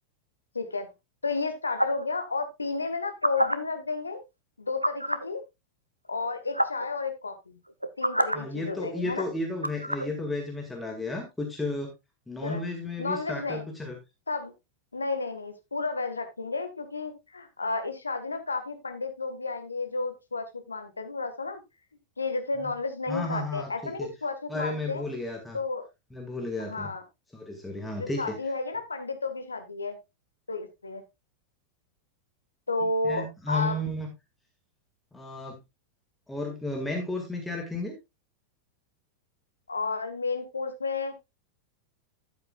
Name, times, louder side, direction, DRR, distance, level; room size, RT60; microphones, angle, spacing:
voice 1, 0.5-0.9 1.2-4.2 4.6-5.4 6.1-7.6 8.0-9.3 12.4-12.6 13.0-13.6 14.3-14.5 14.9-21.6 22.2-25.0 25.5-25.8 26.6-27.0 28.0-30.0 30.5-31.0 32.7-33.8 39.7-41.1, left 3 dB, 75° left, 8 dB, 1.7 m, -32 dB
sound 1, 1.8-2.1 3.0-3.5 4.8-5.3 6.2-6.3 6.5-6.9 7.7-8.4 9.6-10.1, equal, 90° right, 0.7 m, -26 dB
voice 2, 8.3-11.9 12.3-14.0 22.6-22.7 23.1-24.1 24.5-25.6 26.1-26.9 27.3-28.4 33.0-34.1 35.1-35.6 36.3-37.9, left 2 dB, 5° left, 2 dB, 2.1 m, -33 dB
12.5 x 8.1 x 2.4 m, 0.22 s
figure-of-eight pair, 90°, 0 cm